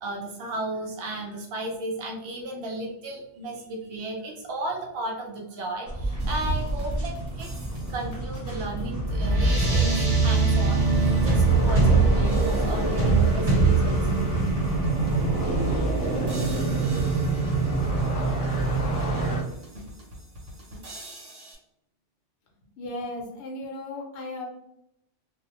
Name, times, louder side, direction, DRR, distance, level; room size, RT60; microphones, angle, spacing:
voice 1, 0.0-7.5 7.9-14.3, right 2 dB, 60° right, 1 dB, 0.7 m, -34 dB
sound 1, 5.9-19.4, right 2 dB, 35° left, 0.7 m, -26 dB
sound 2, 6.2-10.6 11.1-11.2 12.0-21.6, equal, 85° right, 1.0 m, -45 dB
sound 3, 8.2-18.9, right 4 dB, 35° right, 1.2 m, -25 dB
voice 2, 22.8-24.5, left 2 dB, 65° left, 0 dB, 0.9 m, -35 dB
2.4 x 2.0 x 2.8 m, 0.80 s
omnidirectional pair, 1.2 m